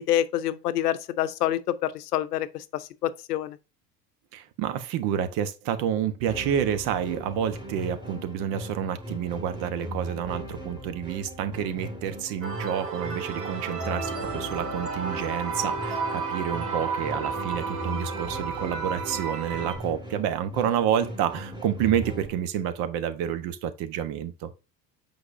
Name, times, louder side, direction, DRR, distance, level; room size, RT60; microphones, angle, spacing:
voice 1, 0.0-3.6, left 12 dB, 80° left, 0.7 m, -27 dB
voice 2, 4.3-24.5, right 9 dB, 55° right, 1.1 m, -29 dB
sound 1, 6.3-22.3, equal, 10° right, 2.1 m, -39 dB
sound 2, 12.4-19.8, right 4 dB, 70° right, 3.0 m, -32 dB
7.9 x 5.2 x 2.6 m
hypercardioid pair, 75°, 47 cm